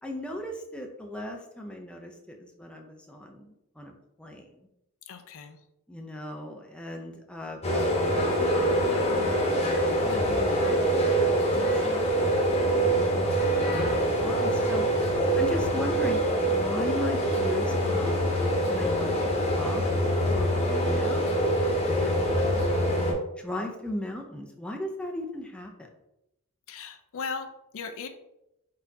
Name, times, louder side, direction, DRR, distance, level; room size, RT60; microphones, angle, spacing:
voice 1, 0.0-3.9 4.2-4.5 5.9-7.6 8.4-9.3 10.0-12.4 13.0-13.3 13.5-14.9 15.4-18.2 18.7-19.1 19.6-19.8 20.3-21.4 21.8-22.9 23.4-25.9, left 1 dB, 5° left, 1 dB, 0.4 m, -37 dB
voice 2, 5.1-5.6 26.7-28.1, left 5 dB, 65° left, 7 dB, 0.4 m, -37 dB
sound 1, 7.6-23.1, right 1 dB, 30° left, 1.0 m, -25 dB
4.2 x 4.2 x 2.7 m, 0.87 s
head